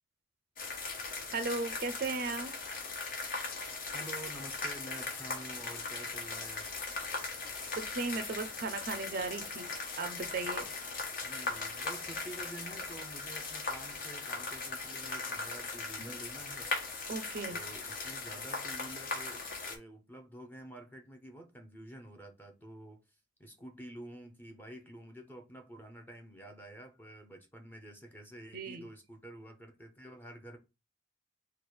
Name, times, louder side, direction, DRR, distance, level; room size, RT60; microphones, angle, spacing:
sound 1, 0.6-19.8, left 3 dB, 45° left, 0.8 m, -39 dB
voice 1, 1.3-2.5 7.7-9.7 10.0-10.7 17.1-17.6 28.5-28.8, right 3 dB, 45° right, 0.4 m, -36 dB
voice 2, 3.9-6.8 11.2-16.7 17.5-23.0 23.4-30.6, right 1 dB, 10° left, 0.7 m, -49 dB
3.2 x 2.3 x 4.3 m
head